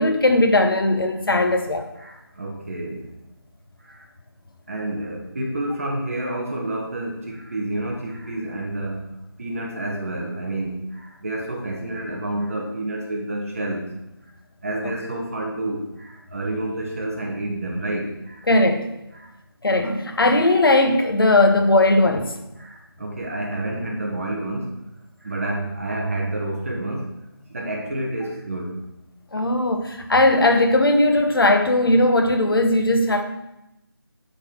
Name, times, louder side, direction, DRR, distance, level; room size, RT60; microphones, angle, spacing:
voice 1, 0.0-1.9 18.5-18.9 19.6-22.3 29.3-33.2, left 2 dB, 65° left, 5 dB, 1.0 m, -18 dB
voice 2, 2.0-3.1 3.9-4.0 4.7-9.0 9.4-13.9 14.6-18.4 19.1-19.3 22.6-24.7 25.2-27.1 27.5-28.7, right 1 dB, 35° right, -1 dB, 1.1 m, -29 dB
9.9 x 3.9 x 4.3 m, 0.90 s
figure-of-eight pair, 170°, 13 cm